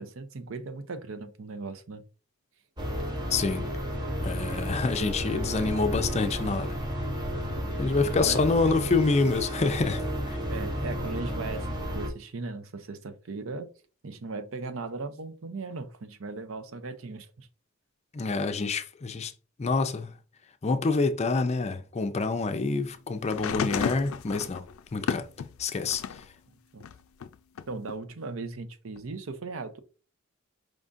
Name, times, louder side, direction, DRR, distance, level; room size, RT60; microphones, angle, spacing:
voice 1, 0.0-2.0 7.9-8.5 10.5-11.7 11.9-13.7 14.0-17.5 26.7-26.9 27.7-29.8, right 3 dB, 75° right, 0.6 m, -38 dB
sound 1, 2.8-12.1, equal, 20° right, 0.8 m, -32 dB
voice 2, 3.3-3.7 4.2-6.7 7.8-10.0 10.3-10.4 18.1-19.3 19.6-20.1 20.6-24.6 24.9-25.3 25.6-26.0, left 3 dB, 30° left, 0.4 m, -27 dB
sound 2, 23.3-26.3 26.8-27.9 29.0-29.1, left 7 dB, 90° left, 0.4 m, -33 dB
5.0 x 3.6 x 2.6 m
head